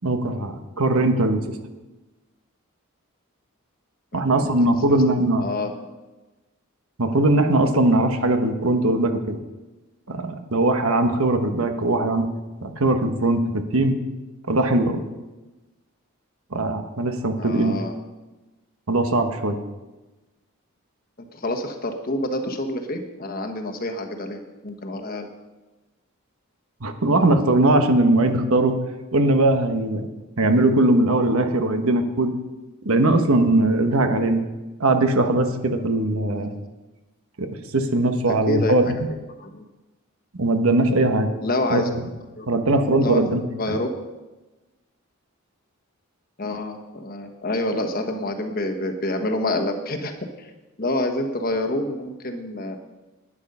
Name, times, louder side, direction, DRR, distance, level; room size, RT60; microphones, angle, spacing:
voice 1, 0.0-1.4 4.1-5.4 7.0-9.4 10.1-12.3 12.6-13.9 14.5-15.0 16.5-17.8 18.9-19.6 26.8-28.7 29.1-30.1 30.4-32.3 32.8-34.4 34.8-36.5 37.4-37.5 37.7-38.8 40.4-41.3 41.7-41.8 42.5-43.4 43.7-43.8, right 2 dB, 75° right, 6 dB, 1.2 m, -20 dB
voice 2, 4.1-5.9 17.4-18.0 21.3-25.3 36.3-36.7 38.2-38.9 39.4-39.6 41.4-41.9 42.4-42.5 43.0-43.2 43.6-44.1 46.4-50.1 50.4-50.5 50.8-52.8, left 1 dB, 40° left, 5 dB, 1.2 m, -28 dB
11.5 x 10.0 x 5.5 m, 1.1 s
head